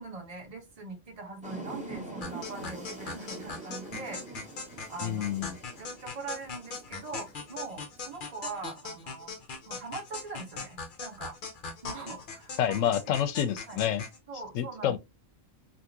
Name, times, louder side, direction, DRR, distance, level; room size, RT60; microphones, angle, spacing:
voice 1, 0.0-4.2 4.9-5.3 5.8-9.3 9.7-11.4 11.8-12.9 13.7-13.8 14.3-15.0, right 4 dB, 30° right, 1.0 m, -42 dB
sound 1, 1.4-8.4, right 2 dB, 5° right, 0.9 m, -44 dB
sound 2, 2.2-14.2, left 4 dB, 50° left, 0.6 m, -41 dB
voice 2, 5.0-5.6 12.6-14.0 14.6-15.0, left 10 dB, 75° left, 0.9 m, -28 dB
3.5 x 2.4 x 2.8 m
omnidirectional pair, 1.4 m